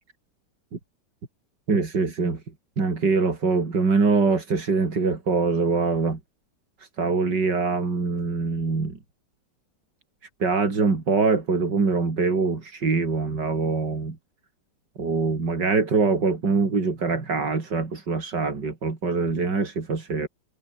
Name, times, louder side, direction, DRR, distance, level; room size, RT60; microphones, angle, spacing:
voice 1, 1.7-2.4 2.8-6.2 6.8-9.0 10.4-14.2 15.0-20.3, right 4 dB, 75° right, 4.1 m, -23 dB
open air
omnidirectional pair, 1.9 m